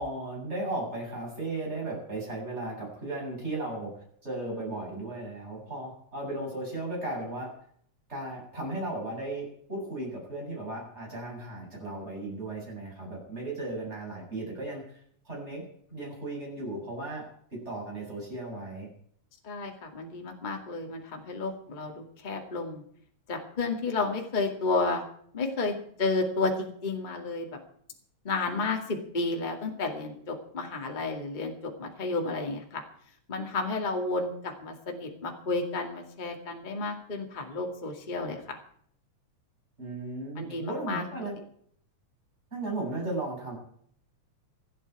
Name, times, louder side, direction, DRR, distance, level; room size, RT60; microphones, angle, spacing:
voice 1, 0.0-7.5 8.1-14.8 15.2-15.6 15.9-18.9 39.8-41.4 42.5-43.6, right 2 dB, 20° right, -2 dB, 8.0 m, -36 dB
voice 2, 19.4-22.8 23.3-25.0 25.3-25.7 26.0-27.5 28.2-32.8 33.3-38.6 40.4-41.3, left 3 dB, 20° left, 2 dB, 1.9 m, -32 dB
27.5 x 9.3 x 4.8 m, 0.63 s
omnidirectional pair, 3.3 m